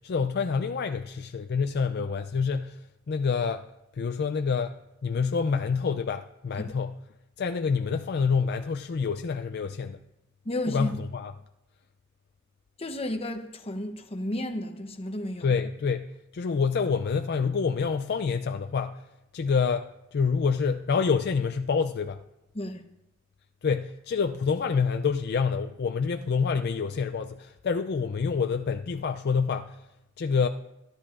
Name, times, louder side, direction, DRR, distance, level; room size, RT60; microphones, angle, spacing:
voice 1, 0.0-2.8 3.1-3.6 3.9-4.8 5.0-6.9 7.4-10.0 10.7-11.3 15.4-16.1 16.3-19.0 19.3-22.2 23.6-29.8 30.2-30.5, left 5 dB, 50° left, 0.4 m, -27 dB
voice 2, 10.4-10.9 12.8-15.5 22.5-22.8, left 1 dB, 30° left, 0.8 m, -32 dB
25.0 x 10.5 x 2.5 m
head